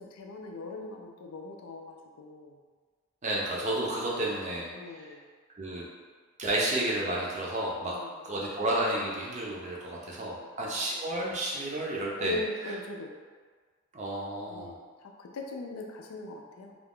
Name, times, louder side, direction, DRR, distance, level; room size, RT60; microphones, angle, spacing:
voice 1, 0.0-2.6 4.7-5.2 7.9-8.3 9.9-10.5 12.2-13.1 14.5-16.8, left 3 dB, 90° left, 1 dB, 0.4 m, -41 dB
voice 2, 3.2-4.7 5.6-5.8 6.4-7.9 8.2-12.4 13.9-14.7, right 1 dB, 30° right, -4 dB, 0.5 m, -31 dB
2.4 x 2.3 x 3.5 m, 1.5 s
head